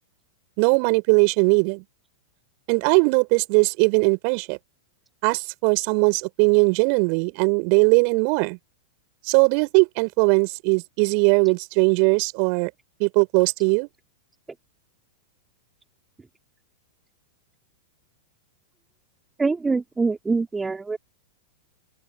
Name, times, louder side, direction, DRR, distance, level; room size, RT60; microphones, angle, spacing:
voice 1, 0.6-1.8 2.7-4.6 5.2-8.6 9.2-12.7 13.0-13.9, right 40 dB or more, 45° right, 6.0 m, -20 dB
voice 2, 19.4-21.0, right 4 dB, 10° right, 3.6 m, -24 dB
open air
figure-of-eight pair, 95°, 0 cm